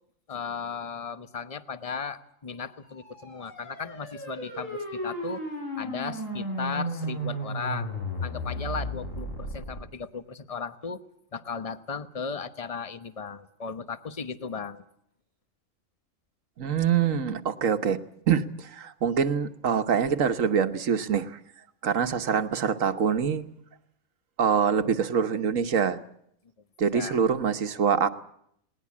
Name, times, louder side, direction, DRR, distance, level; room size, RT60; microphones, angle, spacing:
voice 1, 0.3-5.4 5.8-7.9 8.2-11.0 11.3-14.8 26.9-27.2, left 5 dB, 30° left, 12 dB, 1.0 m, -36 dB
sound 1, 2.9-9.8, equal, 75° left, 6.4 m, -34 dB
voice 2, 16.6-18.0 18.3-21.4 21.8-23.5 24.4-26.0 26.8-28.1, right 7 dB, 80° right, 10 dB, 1.5 m, -25 dB
20.0 x 19.0 x 8.5 m, 0.72 s
omnidirectional pair, 1.3 m